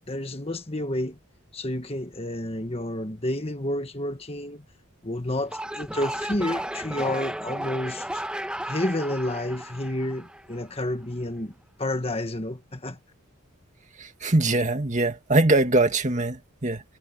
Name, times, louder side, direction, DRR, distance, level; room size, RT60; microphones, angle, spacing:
voice 1, 0.1-1.2 1.5-4.6 5.0-8.2 8.6-13.0, left 1 dB, 25° left, 1.5 m, -30 dB
sound 1, 5.4-10.7, right 1 dB, 5° right, 1.0 m, -34 dB
voice 2, 14.0-16.8, right 2 dB, 35° right, 2.1 m, -22 dB
head